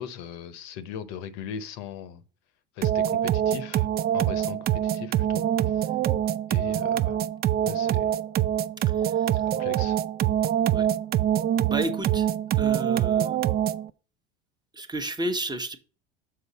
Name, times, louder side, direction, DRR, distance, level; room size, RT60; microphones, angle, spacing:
voice 1, 0.0-2.2 2.7-5.9 6.5-7.2 7.6-8.1 9.3-10.0, left 8 dB, 65° left, 0.8 m, -39 dB
sound 1, 2.8-13.9, right 11 dB, 35° right, 0.4 m, -25 dB
voice 2, 9.0-9.3 10.7-10.9 11.7-12.3 12.6-13.4 14.7-15.8, right 1 dB, 15° right, 0.9 m, -32 dB
6.6 x 4.6 x 4.0 m
supercardioid pair, 90°, 29 cm